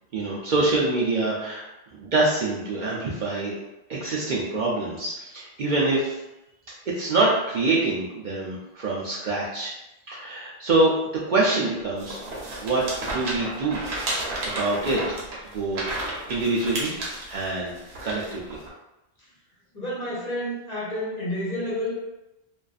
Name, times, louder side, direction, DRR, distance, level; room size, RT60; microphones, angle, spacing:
voice 1, 0.1-1.6 1.9-3.5 3.9-6.2 6.9-9.7 10.1-10.9 11.3-12.2 12.6-13.8 14.4-15.2 15.5-16.9 17.3-18.6, right 2 dB, 55° right, -5 dB, 0.6 m, -25 dB
sound 1, 12.0-18.7, right 1 dB, 85° right, 0.9 m, -32 dB
voice 2, 19.7-21.9, left 1 dB, 45° left, -6 dB, 0.7 m, -30 dB
2.5 x 2.2 x 2.3 m, 0.92 s
omnidirectional pair, 1.1 m